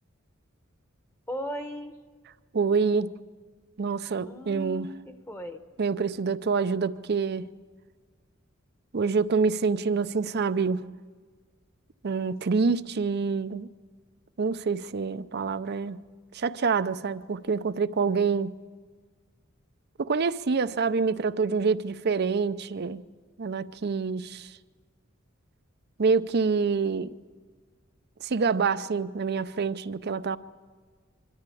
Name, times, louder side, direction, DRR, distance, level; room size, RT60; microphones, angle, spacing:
voice 1, 1.3-2.0 4.2-5.6, equal, 10° left, 1.0 m, -37 dB
voice 2, 2.5-3.1 3.8-4.9 5.8-7.5 8.9-10.9 12.0-13.7 14.4-16.0 16.3-18.6 20.0-23.0 23.4-24.5 26.0-27.1 28.2-30.4, right 5 dB, 55° right, 0.5 m, -26 dB
23.5 x 13.5 x 8.5 m
head